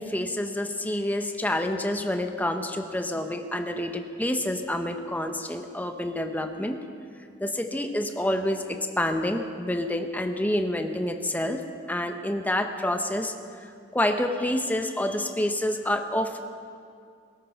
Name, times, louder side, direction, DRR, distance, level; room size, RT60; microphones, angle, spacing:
voice 1, 0.0-6.8 7.4-11.6 11.9-13.3 13.9-16.4, left 1 dB, 10° left, 6 dB, 0.9 m, -28 dB
19.0 x 13.5 x 5.7 m, 2.4 s
head